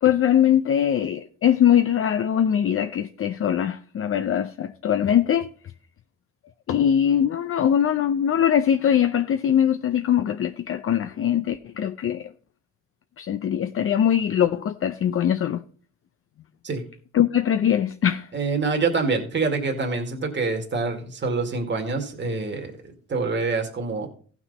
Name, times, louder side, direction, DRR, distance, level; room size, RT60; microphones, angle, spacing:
voice 1, 0.0-5.5 6.7-12.3 13.2-15.6 17.1-18.3, left 9 dB, 45° left, 0.6 m, -22 dB
voice 2, 18.3-22.7 23.1-24.1, right 4 dB, 40° right, 2.2 m, -26 dB
15.5 x 6.1 x 4.1 m
cardioid pair, 90°, 30 cm